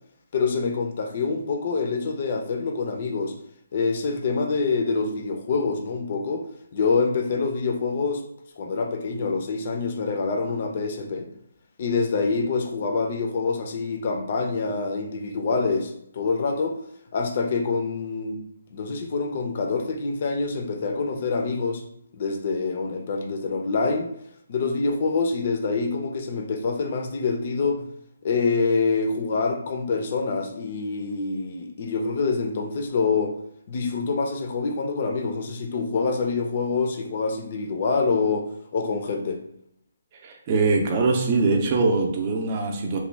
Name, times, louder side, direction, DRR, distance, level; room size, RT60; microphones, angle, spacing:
voice 1, 0.3-3.3 3.7-6.4 6.7-8.2 8.6-11.3 11.8-16.8 17.1-18.4 18.7-21.8 22.1-24.1 24.5-27.9 28.2-33.3 33.7-38.4 38.7-39.4, left 4 dB, 45° left, 4 dB, 0.5 m, -26 dB
voice 2, 40.2-43.0, right 3 dB, 30° right, 2 dB, 0.5 m, -22 dB
3.1 x 2.3 x 3.3 m, 0.72 s
hypercardioid pair, 160°, 0 cm